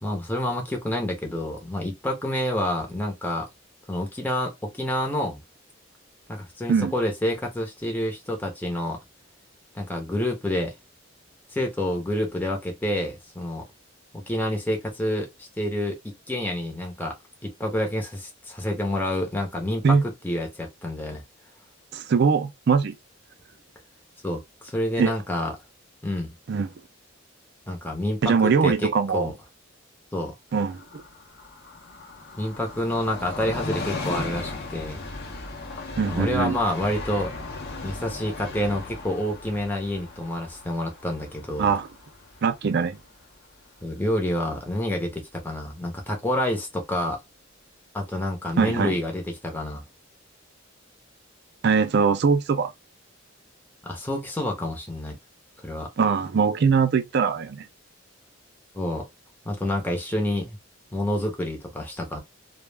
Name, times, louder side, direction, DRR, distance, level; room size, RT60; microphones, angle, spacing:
voice 1, 0.0-3.5 3.9-5.4 6.3-9.0 9.7-10.8 11.5-13.6 14.1-17.1 17.4-21.2 24.2-25.5 26.0-26.3 27.7-29.3 30.1-30.3 32.4-35.0 36.1-37.3 37.8-41.7 43.8-47.2 47.9-49.8 53.8-55.2 55.6-55.9 58.7-59.1 59.5-60.6 60.9-62.2, left 1 dB, 10° left, 0.6 m, -28 dB
voice 2, 21.9-23.0 25.0-25.1 26.5-26.7 28.2-29.3 30.5-30.8 36.0-36.6 41.6-41.9 42.4-43.0 48.6-49.0 51.6-52.7 56.0-57.6, right 5 dB, 55° right, 0.4 m, -21 dB
Train, 30.5-43.8 44.2-44.3, left 3 dB, 50° left, 0.6 m, -37 dB
2.3 x 2.0 x 3.3 m
head